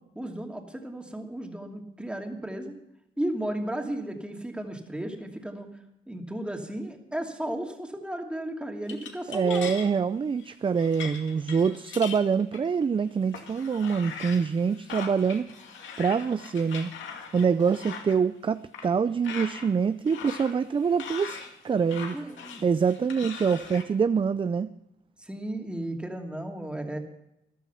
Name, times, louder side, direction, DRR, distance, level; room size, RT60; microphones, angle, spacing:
voice 1, 0.1-2.7 3.2-5.7 6.1-9.7 22.1-22.6 25.2-27.0, right 1 dB, 5° right, 2 dB, 2.7 m, -34 dB
sound 1, 8.9-9.9 10.4-10.5 10.8-12.9 13.3-18.2 18.7-18.9 19.2-19.7 20.1-23.8, left 6 dB, 75° left, 2.4 m, -40 dB
voice 2, 9.3-15.5 16.0-16.9 17.3-21.4 21.6-22.2 22.6-24.7, right 6 dB, 25° right, 13 dB, 0.5 m, -25 dB
14.0 x 12.0 x 5.8 m, 0.86 s
cardioid pair, 90°, 20 cm